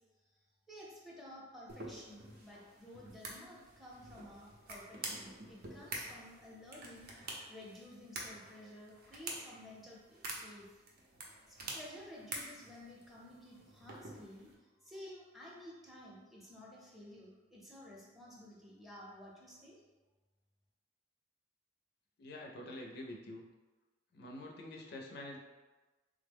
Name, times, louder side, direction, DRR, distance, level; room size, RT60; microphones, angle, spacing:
voice 1, 0.7-10.8 11.5-19.8, left 1 dB, ahead, -5 dB, 0.6 m, -53 dB
sound 1, 1.7-14.5, right 2 dB, 55° right, 0.6 m, -48 dB
voice 2, 22.2-23.4 24.1-25.4, left 1 dB, 60° left, 0 dB, 0.4 m, -46 dB
3.5 x 2.1 x 3.4 m, 1.2 s
head